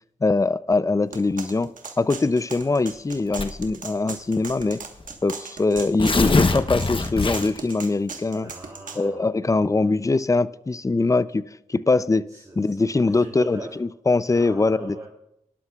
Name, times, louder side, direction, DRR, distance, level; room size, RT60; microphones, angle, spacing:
voice 1, 0.2-1.7 2.0-4.8 5.2-8.5 9.0-11.4 11.7-12.3 12.6-15.0, left 3 dB, 25° left, 17 dB, 0.5 m, -22 dB
sound 1, 1.1-9.0, right 5 dB, 75° right, 1.4 m, -38 dB
Tearing, 3.3-3.7 4.6-4.7 5.0-5.1 5.8-7.7, left 3 dB, 40° left, 1.0 m, -22 dB
voice 2, 8.3-9.6 12.3-13.8 14.3-15.1, right 2 dB, 25° right, -2 dB, 2.8 m, -41 dB
19.5 x 11.5 x 2.4 m, 0.79 s
cardioid pair, 45°, 14 cm